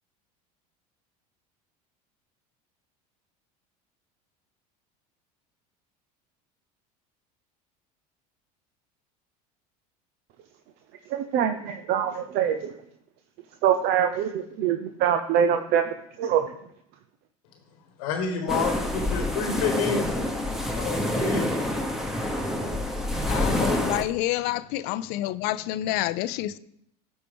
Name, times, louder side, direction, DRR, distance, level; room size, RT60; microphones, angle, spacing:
voice 1, 11.1-12.7 13.6-16.6, right 9 dB, 60° right, 0.7 m, -24 dB
voice 2, 18.0-20.1 20.7-21.5, left 6 dB, 85° left, 1.3 m, -28 dB
sound 1, 18.5-24.0, left 1 dB, ahead, 1.2 m, -27 dB
voice 3, 23.3-26.6, left 15 dB, 65° left, 0.5 m, -28 dB
13.0 x 4.5 x 3.6 m
hypercardioid pair, 90°, 19 cm